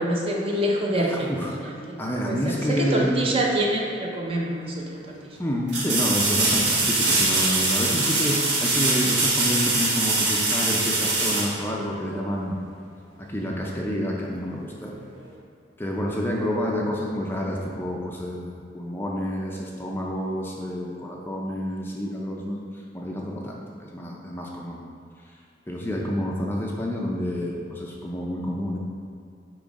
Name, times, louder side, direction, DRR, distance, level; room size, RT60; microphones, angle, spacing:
voice 1, 0.0-1.4 1.6-2.0 2.2-5.1, right 1 dB, 30° right, -1 dB, 0.8 m, -26 dB
voice 2, 1.0-3.2 5.4-12.6 13.2-15.0 15.8-24.8 25.3-25.4 25.7-28.8, equal, 10° left, -2 dB, 0.5 m, -29 dB
sound 1, 4.3-4.4 5.7-12.3 15.2-15.3, right 2 dB, 70° right, 1.5 m, -23 dB
8.5 x 3.1 x 5.2 m, 2.4 s
head